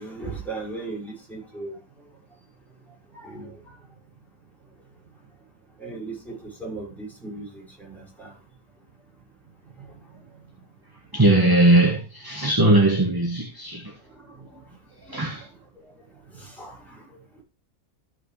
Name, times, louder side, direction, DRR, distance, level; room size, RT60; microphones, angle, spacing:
voice 1, 0.0-1.8 3.1-3.8 5.8-8.4 9.8-10.2 14.1-14.6 15.0-15.5 15.8-15.9 16.3-17.4, right 3 dB, ahead, 5.6 m, -38 dB
voice 2, 11.1-13.9 15.1-15.4, right 1 dB, 15° right, 1.4 m, -19 dB
13.5 x 6.2 x 3.2 m
omnidirectional pair, 1.6 m